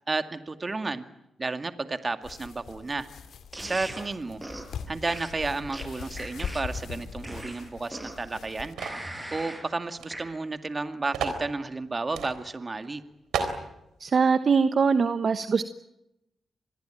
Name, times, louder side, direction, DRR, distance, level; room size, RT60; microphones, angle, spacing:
voice 1, 0.1-1.0 1.4-3.1 3.6-4.4 4.9-8.8 9.3-13.0, right 3 dB, 35° right, 9 dB, 2.1 m, -32 dB
sound 1, 2.2-8.7, left 6 dB, 75° left, 2.3 m, -41 dB
sound 2, 3.5-4.0 4.4-4.7 5.1-6.8 7.2-8.3 8.8-9.7 10.1-10.3, right 1 dB, 15° right, 7.9 m, -39 dB
sound 3, 8.8-9.1 10.0-10.1 10.4-10.5 11.1-11.4 12.1-12.3 12.8-12.9 13.3-13.6, right 6 dB, 85° right, 3.8 m, -30 dB
voice 2, 14.0-15.6, right 5 dB, 60° right, 11 dB, 1.1 m, -22 dB
26.5 x 21.0 x 9.1 m, 0.85 s
supercardioid pair, 45°, 0 cm